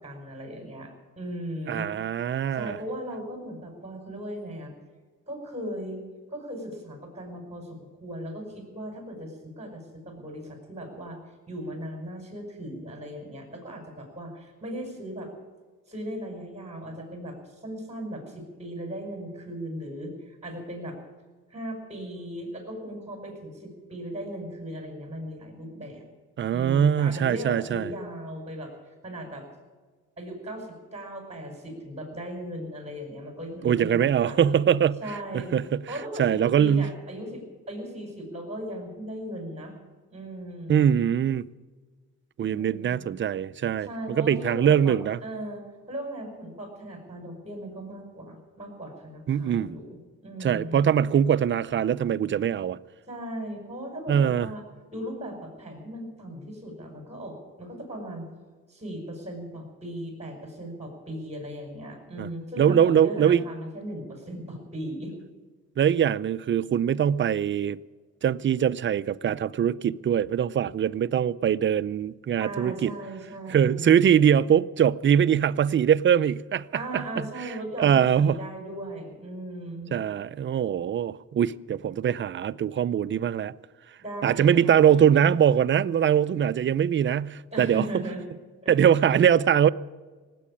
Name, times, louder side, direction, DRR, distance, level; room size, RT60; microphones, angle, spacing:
voice 1, 0.0-1.9 2.5-4.7 5.3-6.0 6.3-11.2 11.5-15.3 15.9-21.0 21.5-26.0 26.5-28.7 29.0-29.4 30.2-34.6 35.0-35.6 35.9-39.7 40.1-40.8 42.5-43.0 43.8-45.0 45.2-50.8 53.1-54.6 54.9-58.3 58.7-65.1 72.4-74.0 76.7-79.9 84.0-84.9 87.5-88.2 88.6-88.8, right 1 dB, 20° right, 5.7 m, -37 dB
voice 2, 1.7-2.8 26.4-27.9 33.6-35.0 35.3-35.8 36.2-36.9 40.7-41.5 42.4-45.2 49.3-49.7 50.4-52.8 54.1-54.5 62.2-62.3 62.6-63.4 65.8-67.8 68.2-72.9 73.5-77.5 77.8-78.4 79.9-83.5 84.2-87.9 88.7-89.7, right 9 dB, 40° right, 0.5 m, -22 dB
18.5 x 8.5 x 8.6 m
cardioid pair, 90°, 30 cm